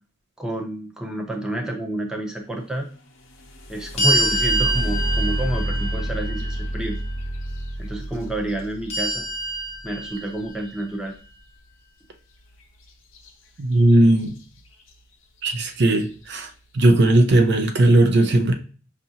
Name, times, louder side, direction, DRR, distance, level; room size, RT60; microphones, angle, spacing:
voice 1, 0.4-2.9 3.7-7.0 7.8-9.3 9.8-11.1, right 1 dB, 5° right, 1 dB, 0.6 m, -29 dB
sound 1, 3.2-11.1 13.1-13.3 13.7-14.3 14.9-15.0 15.5-15.8, right 1 dB, 70° left, 0.7 m, -29 dB
sound 2, 4.0-7.1 8.9-10.7, right 1 dB, 30° left, 0.8 m, -26 dB
voice 2, 13.6-14.3 15.4-16.5 16.7-18.5, right 1 dB, 55° right, 6 dB, 0.5 m, -17 dB
5.3 x 2.5 x 2.7 m, 0.37 s
head